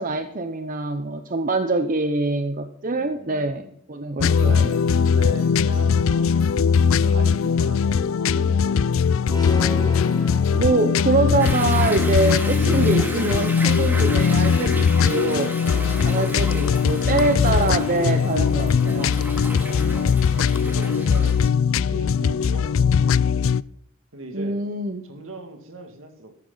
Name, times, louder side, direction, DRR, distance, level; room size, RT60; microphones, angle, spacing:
voice 1, 0.0-4.8 10.5-15.6 16.0-19.2 24.3-25.0, right 3 dB, 40° right, 8 dB, 0.8 m, -24 dB
voice 2, 2.9-3.7 4.2-6.7 7.0-9.6 15.6-16.4 19.6-23.3 24.1-24.6 25.0-26.4, right 2 dB, 70° right, 6 dB, 2.3 m, -40 dB
sound 1, 4.2-23.6, left 6 dB, 70° left, 0.4 m, -20 dB
sound 2, 9.3-11.3, left 1 dB, 20° left, 2.1 m, -34 dB
Toilet flush / Drip / Trickle dribble, 11.4-21.5, right 1 dB, 10° right, 2.2 m, -34 dB
14.0 x 12.0 x 4.0 m, 0.66 s
head